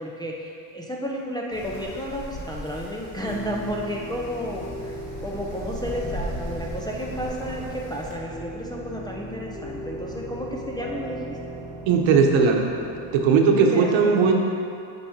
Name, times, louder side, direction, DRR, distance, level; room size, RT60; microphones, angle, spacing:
voice 1, 0.0-11.4 13.5-14.3, equal, 10° left, -3 dB, 0.4 m, -32 dB
Wind, 1.5-8.1, equal, 35° left, 1.9 m, -38 dB
sound 1, 3.2-13.3, right 1 dB, 10° right, 0.8 m, -38 dB
voice 2, 11.9-12.7 13.1-14.3, right 5 dB, 75° right, 2 dB, 1.0 m, -18 dB
8.1 x 5.6 x 4.3 m, 2.5 s
cardioid pair, 150°, 47 cm